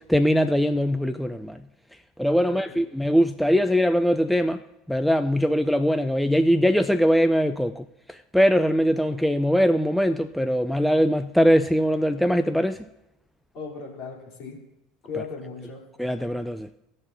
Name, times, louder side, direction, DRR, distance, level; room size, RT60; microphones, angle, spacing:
voice 1, 0.1-1.6 2.2-4.6 4.9-12.8 16.0-16.7, equal, ahead, 0.4 m, -21 dB
voice 2, 2.4-2.9 13.5-14.6 15.1-15.9, left 5 dB, 45° left, 3.1 m, -37 dB
18.0 x 6.6 x 2.6 m
figure-of-eight pair, 70°, 0 cm